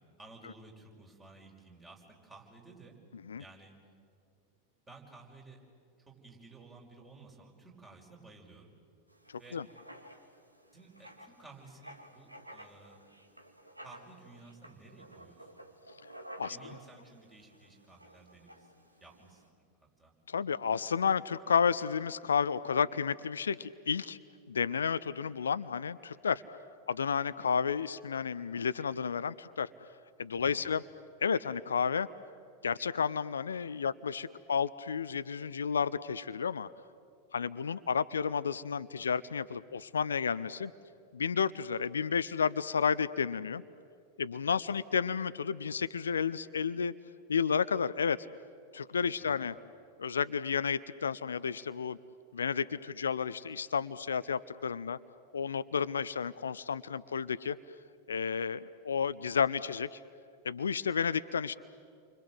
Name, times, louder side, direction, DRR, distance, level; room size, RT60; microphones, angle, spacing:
voice 1, 0.2-3.0 3.4-3.8 4.9-5.6 6.1-8.7 9.4-9.6 10.7-13.0 13.8-15.6 16.4-19.6 20.0-20.1 30.4-30.7 49.2-49.5, right 3 dB, 15° right, 0 dB, 5.6 m, -55 dB
Writing, 9.1-19.5, right 1 dB, 85° right, 1.9 m, -53 dB
voice 2, 9.3-9.6 16.4-16.6 20.3-24.2 24.5-26.4 26.9-29.7 30.2-30.8 31.2-32.1 32.6-36.7 37.3-40.7 41.1-43.6 44.2-46.9 47.3-48.3 48.7-49.5 50.0-52.0 52.3-55.0 55.3-57.6 58.1-60.0 60.4-61.5, left 6 dB, 70° left, 15 dB, 0.6 m, -31 dB
30.0 x 25.0 x 7.9 m, 2.3 s
figure-of-eight pair, 90°, 0 cm